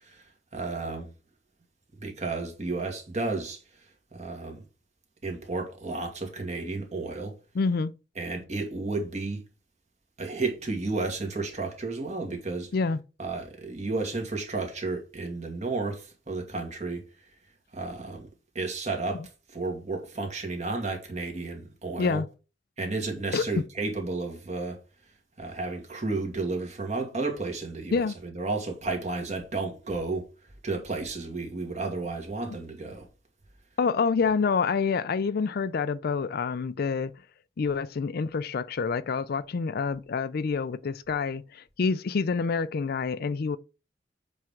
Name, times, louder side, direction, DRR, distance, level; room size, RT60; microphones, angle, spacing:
voice 1, 0.5-1.1 2.0-3.6 4.1-4.6 5.2-7.3 8.2-9.4 10.2-12.7 13.2-17.0 17.7-18.3 18.6-22.2 22.8-24.8 25.4-30.2 30.6-33.1, right 3 dB, 40° right, 2.1 m, -32 dB
voice 2, 7.5-7.9 12.7-13.0 19.1-19.3 22.0-22.3 23.3-23.6 27.9-28.2 32.5-32.6 33.8-37.1 37.6-43.6, left 5 dB, 55° left, 0.4 m, -27 dB
7.6 x 3.6 x 5.8 m
head